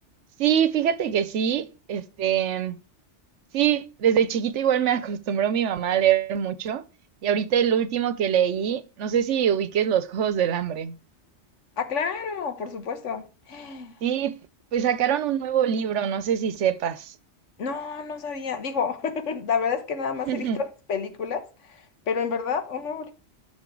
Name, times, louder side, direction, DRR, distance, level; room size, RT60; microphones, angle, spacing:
voice 1, 0.4-2.8 3.5-6.8 7.2-11.0 14.0-14.4 14.7-17.2 20.2-20.6, right 9 dB, 85° right, 1.1 m, -24 dB
voice 2, 11.8-14.0 17.6-23.1, left 6 dB, 85° left, 1.5 m, -30 dB
11.5 x 6.1 x 4.7 m
omnidirectional pair, 1.2 m